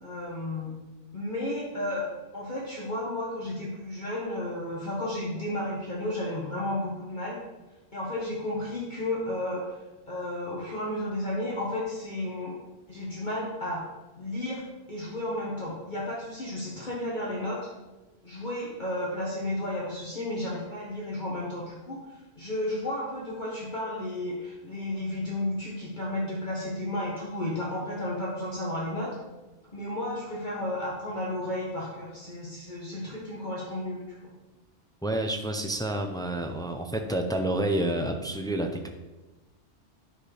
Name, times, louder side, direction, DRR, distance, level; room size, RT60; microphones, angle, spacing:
voice 1, 0.0-0.7 1.1-2.0 2.3-7.4 7.9-9.7 10.1-12.5 12.9-13.8 14.2-17.7 18.2-29.1 29.7-34.3, left 1 dB, 40° left, -5 dB, 1.6 m, -33 dB
voice 2, 35.0-38.9, right 1 dB, 5° left, 4 dB, 0.4 m, -29 dB
9.7 x 4.4 x 5.0 m, 1.1 s
omnidirectional pair, 1.2 m